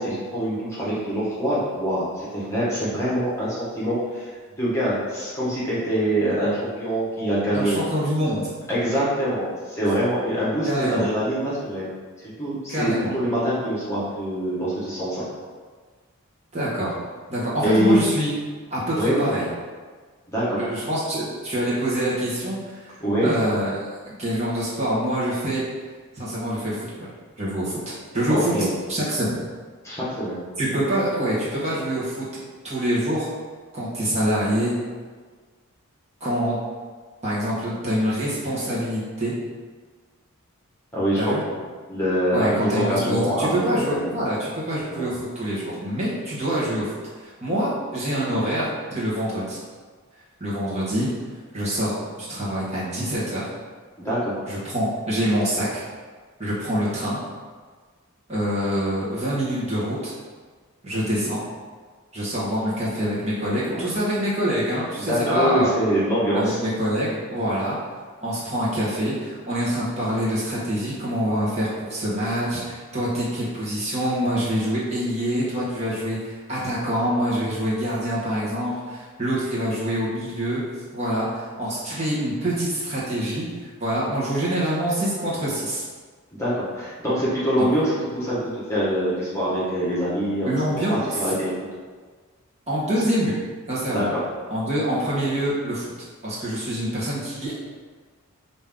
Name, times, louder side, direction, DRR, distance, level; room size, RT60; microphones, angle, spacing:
voice 1, 0.0-4.3 4.6-7.8 8.7-11.9 12.2-15.2 17.6-18.0 18.9-19.3 20.3-20.6 23.0-23.3 28.3-28.7 29.8-30.4 40.9-41.5 41.9-44.1 44.9-45.1 54.0-54.3 63.6-63.9 64.9-66.6 86.4-91.5 93.9-94.2, equal, 15° left, -9 dB, 1.2 m, -24 dB
voice 2, 7.5-8.5 10.6-11.1 12.7-13.1 16.5-17.0 17.3-18.3 18.7-19.5 20.5-22.9 23.2-23.8 24.0-25.6 26.2-27.1 27.4-28.5 28.9-29.4 30.6-32.3 32.6-33.3 33.7-34.7 36.2-36.6 37.2-39.3 41.2-41.4 42.3-46.9 47.4-49.6 50.4-51.1 51.5-53.5 54.5-55.8 56.4-57.2 58.3-60.1 60.8-61.4 62.1-65.7 66.3-67.8 68.2-80.6 80.9-83.4 83.8-85.8 87.6-87.7 90.4-91.2 92.7-93.4 93.7-94.1 94.5-95.9 96.2-97.6, equal, 30° right, -8 dB, 1.2 m, -25 dB
5.2 x 2.7 x 3.6 m, 1.5 s
head